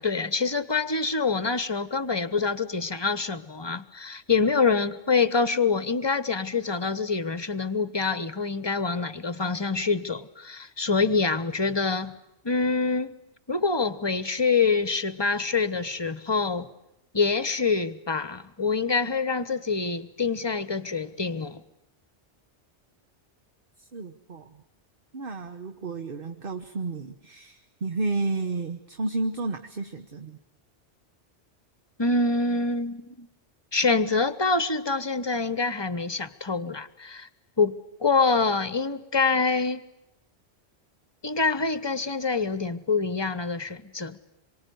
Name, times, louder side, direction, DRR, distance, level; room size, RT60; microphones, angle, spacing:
voice 1, 0.0-12.1 12.4-13.1 13.5-16.7 17.1-21.6 32.0-33.3 33.7-37.3 37.6-39.8 41.2-44.2, left 4 dB, 25° left, 14 dB, 1.1 m, -26 dB
voice 2, 23.8-24.6 25.1-30.4, right 3 dB, 55° right, 6 dB, 1.4 m, -32 dB
26.5 x 23.5 x 9.3 m, 0.85 s
omnidirectional pair, 1.2 m